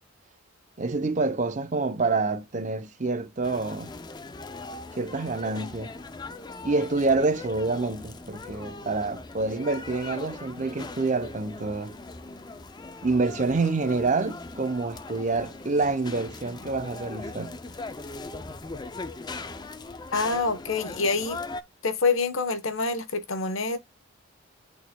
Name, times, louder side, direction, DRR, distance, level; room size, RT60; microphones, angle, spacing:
voice 1, 0.8-3.9 5.0-5.9 6.6-11.9 13.0-17.6, right 3 dB, 35° right, 0.6 m, -27 dB
sound 1, 3.4-21.6, left 3 dB, 20° left, 0.4 m, -40 dB
voice 2, 20.1-21.4 21.8-23.8, left 4 dB, 75° left, 1.0 m, -26 dB
11.0 x 4.1 x 2.2 m
head